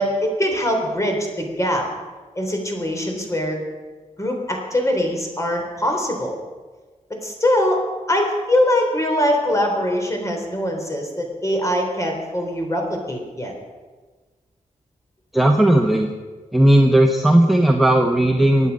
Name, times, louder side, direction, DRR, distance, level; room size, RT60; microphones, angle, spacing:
voice 1, 0.0-1.9 2.4-3.6 4.2-6.4 7.2-7.8 8.1-13.5, left 1 dB, 20° left, 2 dB, 3.8 m, -22 dB
voice 2, 15.3-16.1 16.5-18.7, right 1 dB, ahead, 2 dB, 1.1 m, -15 dB
24.5 x 9.3 x 5.4 m, 1.3 s
wide cardioid pair, 100°, 14 cm